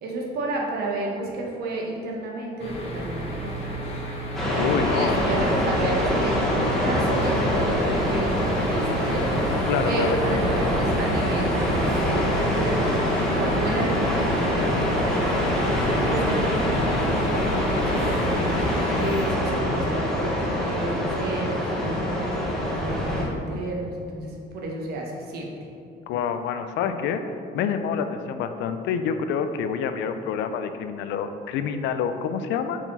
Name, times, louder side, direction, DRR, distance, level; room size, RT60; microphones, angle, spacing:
voice 1, 0.0-4.0 4.8-9.6 9.8-13.9 16.0-17.4 17.8-25.5, right 2 dB, 60° right, -1 dB, 1.1 m, -31 dB
sound 1, 2.6-19.3, equal, 35° left, 0.9 m, -32 dB
sound 2, 4.3-23.2, equal, 5° left, 1.0 m, -24 dB
voice 2, 4.6-5.2 9.7-10.2 26.1-27.2 27.5-32.8, left 7 dB, 80° left, 9 dB, 0.4 m, -27 dB
5.9 x 4.6 x 4.1 m, 2.6 s
cardioid pair, 175°, 18 cm